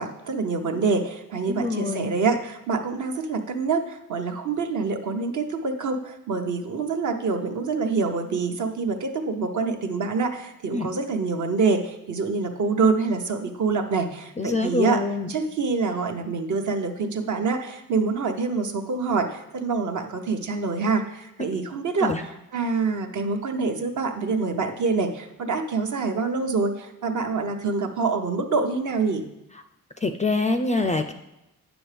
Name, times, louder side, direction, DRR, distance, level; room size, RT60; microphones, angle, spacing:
voice 1, 0.0-15.0 15.3-22.1 22.5-29.2, right 4 dB, 55° right, 5 dB, 0.9 m, -26 dB
voice 2, 1.5-2.2 10.7-10.9 14.4-15.3 22.0-22.2 30.0-31.1, left 3 dB, 20° left, 8 dB, 0.3 m, -25 dB
8.9 x 6.1 x 3.3 m, 0.91 s
cardioid pair, 90°, 36 cm